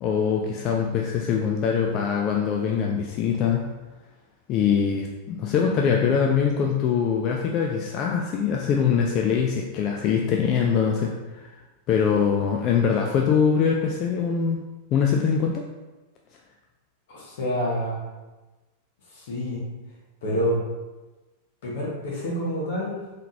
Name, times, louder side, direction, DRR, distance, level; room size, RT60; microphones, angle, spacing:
voice 1, 0.0-3.7 4.5-11.5 11.9-14.6 14.9-15.6, left 7 dB, 35° left, 1 dB, 0.4 m, -23 dB
voice 2, 17.1-17.9 19.1-19.6 20.2-20.6 21.6-23.0, equal, 55° left, -4 dB, 1.3 m, -27 dB
3.7 x 3.4 x 2.7 m, 1.2 s
figure-of-eight pair, 90°, 0 cm